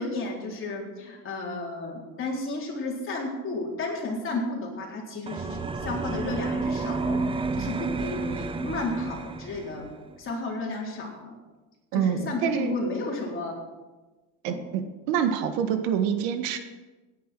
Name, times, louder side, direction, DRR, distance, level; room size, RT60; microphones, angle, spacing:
voice 1, 0.0-9.9 10.2-11.4 11.9-13.5 14.5-14.6, left 2 dB, 35° left, -2 dB, 4.1 m, -33 dB
sound 1, 5.3-9.9, right 4 dB, 15° right, 0.6 m, -30 dB
voice 2, 11.9-12.7 14.4-16.6, right 8 dB, 75° right, 8 dB, 1.4 m, -26 dB
17.0 x 10.0 x 4.6 m, 1.2 s
cardioid pair, 125°, 37 cm